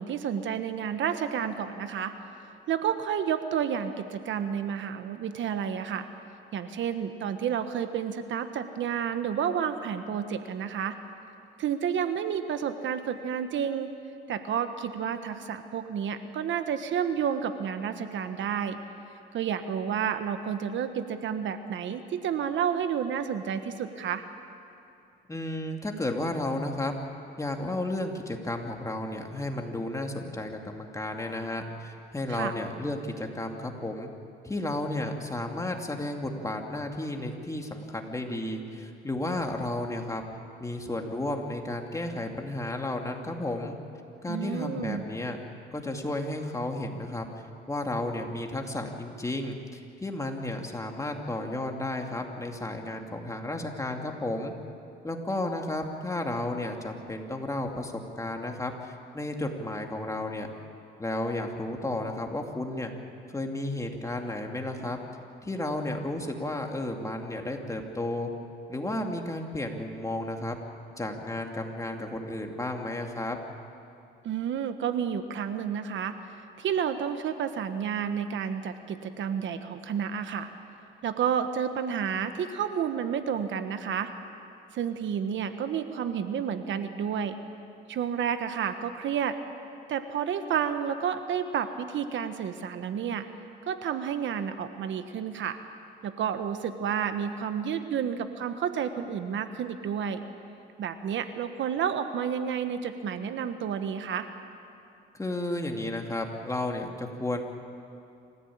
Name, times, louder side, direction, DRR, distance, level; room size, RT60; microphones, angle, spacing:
voice 1, 0.0-2.1 2.7-6.1 6.5-11.0 11.6-13.9 14.3-18.8 19.3-24.2 32.3-32.5 44.3-45.0 74.2-76.2 76.6-80.5 81.0-84.1 84.7-87.4 87.9-89.4 89.9-93.3 93.7-95.6 96.0-100.2 100.8-104.3, right 8 dB, 70° right, 9 dB, 1.3 m, -30 dB
voice 2, 25.3-27.0 27.4-34.1 34.4-40.2 40.6-43.8 44.2-45.4 45.7-47.3 47.7-54.5 55.0-60.5 61.0-62.9 63.3-65.0 65.4-68.3 68.7-70.6 71.0-73.4 105.1-107.4, left 1 dB, 15° left, 2 dB, 2.7 m, -33 dB
27.0 x 15.0 x 8.7 m, 2.6 s
cardioid pair, 90°, 20 cm